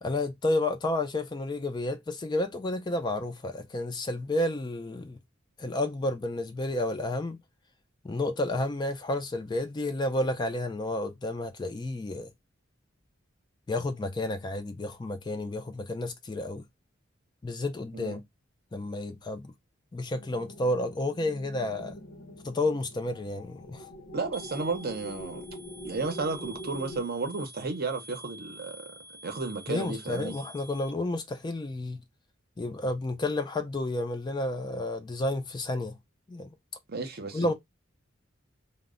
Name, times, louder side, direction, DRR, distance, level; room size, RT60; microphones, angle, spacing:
voice 1, 0.0-5.2 5.6-7.4 8.0-12.3 13.7-16.6 17.4-18.2 18.7-19.5 19.9-21.9 22.4-23.8 29.7-32.0 32.6-36.0 36.3-36.5 37.3-37.5, left 2 dB, 20° left, 0.3 m, -31 dB
sound 1, 20.1-27.0, left 1 dB, 65° left, 0.7 m, -44 dB
voice 2, 24.1-25.5 25.8-28.9 29.2-30.4 36.9-37.5, right 3 dB, 50° right, 0.6 m, -33 dB
sound 2, 24.3-30.9, equal, 10° right, 0.7 m, -48 dB
2.1 x 2.1 x 3.5 m
head